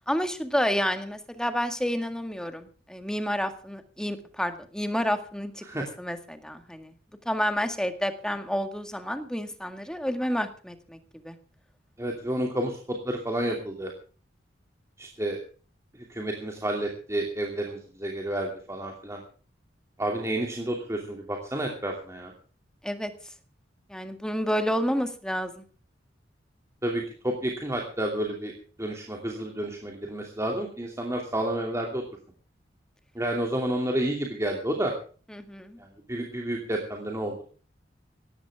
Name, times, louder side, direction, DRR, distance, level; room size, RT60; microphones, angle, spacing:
voice 1, 0.1-6.9 7.3-11.0 11.2-11.4 22.8-23.1 23.9-25.6 35.3-35.8, equal, 5° left, 8 dB, 1.9 m, -30 dB
voice 2, 12.0-13.9 15.0-15.4 16.1-19.2 20.0-22.3 26.8-28.5 28.8-32.0 33.1-34.9 35.8-37.4, right 1 dB, 15° right, 1 dB, 2.8 m, -30 dB
18.0 x 15.0 x 3.6 m, 0.40 s
head